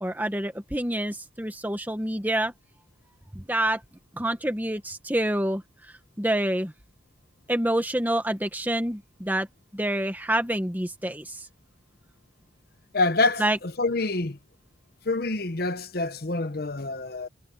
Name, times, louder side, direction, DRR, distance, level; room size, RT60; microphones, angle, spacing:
voice 1, 0.0-2.5 3.3-3.8 4.2-5.6 6.2-6.7 7.5-9.5 9.7-11.4 13.4-13.6, right 1 dB, 10° right, 1.6 m, -27 dB
voice 2, 12.9-14.4 15.0-17.3, left 3 dB, 55° left, 0.9 m, -26 dB
head